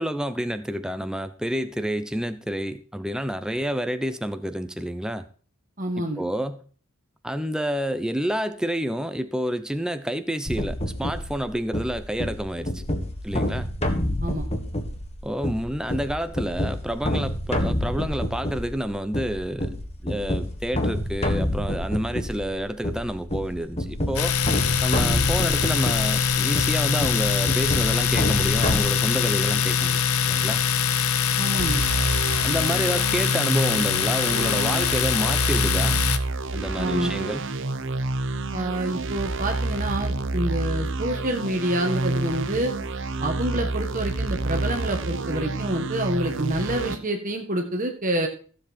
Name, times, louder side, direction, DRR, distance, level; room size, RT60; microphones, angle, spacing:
voice 1, 0.0-5.3 5.9-6.6 7.2-12.8 13.2-13.7 15.2-19.7 20.0-24.3 24.8-30.6 32.4-36.0 36.5-37.4 43.5-43.6, equal, 5° right, 10 dB, 0.7 m, -29 dB
voice 2, 5.8-6.2 14.2-14.5 31.4-31.8 36.8-37.1 38.5-42.7 43.2-48.3, right 1 dB, 40° right, 3 dB, 1.5 m, -27 dB
sound 1, 10.5-28.8, left 1 dB, 30° left, 1.6 m, -28 dB
Domestic sounds home sounds, 24.2-36.2, left 7 dB, 90° left, 0.9 m, -23 dB
sound 2, 31.6-47.0, right 2 dB, 60° right, 1.0 m, -28 dB
15.0 x 7.7 x 4.4 m, 0.41 s
head